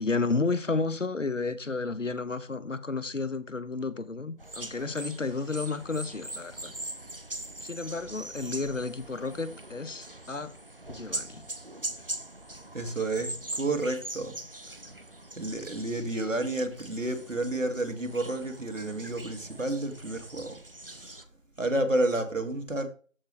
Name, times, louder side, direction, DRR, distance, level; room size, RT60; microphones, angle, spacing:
voice 1, 0.0-6.7 7.6-10.5 10.9-11.4, left 3 dB, 70° left, 1.0 m, -32 dB
sound 1, 4.4-21.2, right 1 dB, 45° right, 0.8 m, -41 dB
voice 2, 12.7-14.4 15.4-20.6 20.9-21.2 21.6-22.9, right 2 dB, 75° right, 2.3 m, -30 dB
13.5 x 4.7 x 3.3 m
figure-of-eight pair, 170°, 39 cm